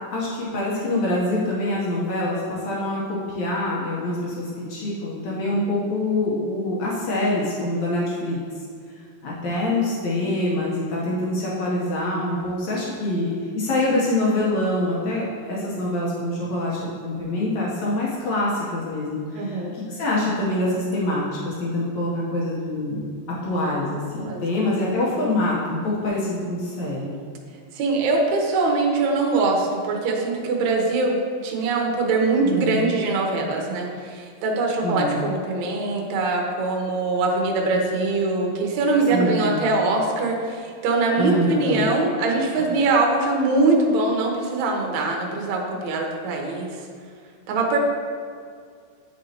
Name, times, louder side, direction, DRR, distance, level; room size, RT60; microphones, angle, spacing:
voice 1, 0.1-8.4 9.2-23.0 23.4-27.1 32.4-32.9 34.8-35.2 39.1-39.7 41.2-41.8, left 1 dB, 80° left, -5 dB, 1.6 m, -25 dB
voice 2, 19.3-19.7 24.2-24.4 27.7-31.2 31.4-46.7 47.5-47.8, right 3 dB, 75° right, 0 dB, 1.6 m, -22 dB
9.7 x 5.3 x 2.9 m, 2.1 s
omnidirectional pair, 4.6 m